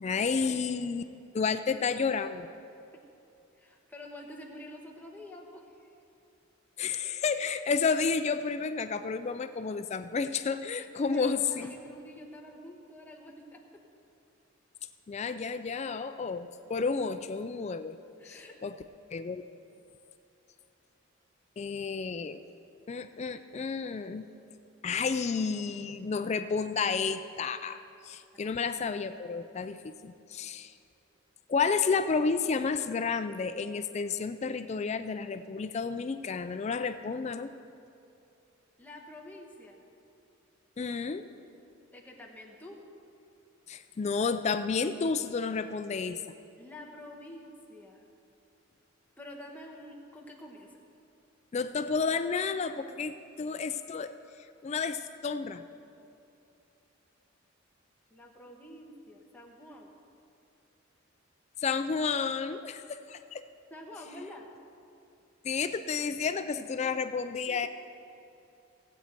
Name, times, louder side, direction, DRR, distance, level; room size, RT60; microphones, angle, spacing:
voice 1, 0.0-1.0 1.3-2.5 6.8-11.8 15.1-18.0 18.2-18.7 19.1-19.4 21.6-22.4 22.9-24.3 24.8-30.7 31.5-37.5 40.8-41.3 43.7-46.2 51.5-54.1 54.6-55.6 61.6-63.4 65.4-67.7, left 5 dB, 30° left, 10 dB, 0.3 m, -31 dB
voice 2, 3.5-5.9 10.8-13.8 18.2-18.6 28.3-28.7 38.8-39.8 41.9-42.8 46.6-48.0 49.2-50.8 58.1-59.9 63.7-64.5 66.8-67.0 67.4-67.7, left 1 dB, 10° left, -1 dB, 1.2 m, -48 dB
18.0 x 8.2 x 4.4 m, 2.7 s
head